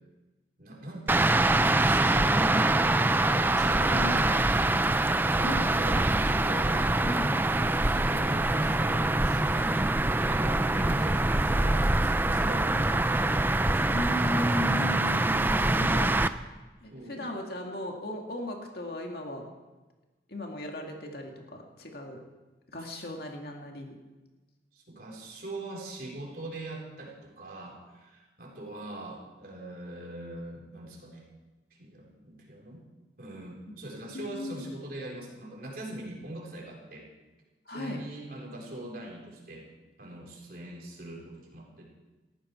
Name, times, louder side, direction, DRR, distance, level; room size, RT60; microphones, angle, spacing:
voice 1, 0.6-4.6 4.9-7.0 7.5-13.8 16.9-17.3 22.8-23.0 24.7-31.3 31.8-32.8 33.2-37.1 37.7-39.7 40.0-41.9, right 1 dB, 55° right, -1 dB, 4.1 m, -41 dB
sound 1, 1.1-16.3, right 2 dB, 10° right, 0.4 m, -24 dB
voice 2, 3.9-4.2 5.4-5.7 7.0-7.3 13.9-16.2 16.8-19.4 20.3-22.2 22.7-24.0 34.1-34.6 37.7-38.0, left 1 dB, 55° left, 1 dB, 2.3 m, -36 dB
18.5 x 14.5 x 4.6 m, 1.2 s
head